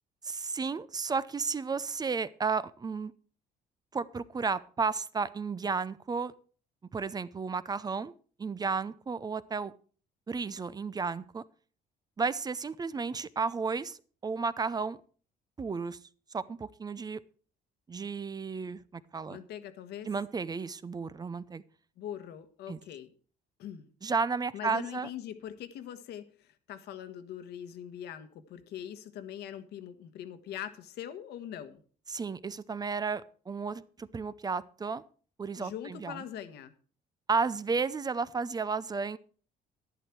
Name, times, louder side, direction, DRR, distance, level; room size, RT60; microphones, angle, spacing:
voice 1, 0.2-3.1 3.9-6.3 6.9-8.1 8.4-9.7 10.3-11.4 12.2-15.0 15.6-16.0 16.3-17.2 17.9-19.4 20.0-21.6 22.7-22.8 24.0-25.1 32.1-35.0 35.4-36.2 37.3-39.2, right 5 dB, 25° right, 17 dB, 0.5 m, -33 dB
voice 2, 19.3-20.1 22.0-23.1 23.6-23.9 24.5-31.8 35.6-36.7, left 10 dB, 75° left, 11 dB, 1.4 m, -42 dB
11.0 x 11.0 x 4.6 m, 0.42 s
cardioid pair, 110°, 17 cm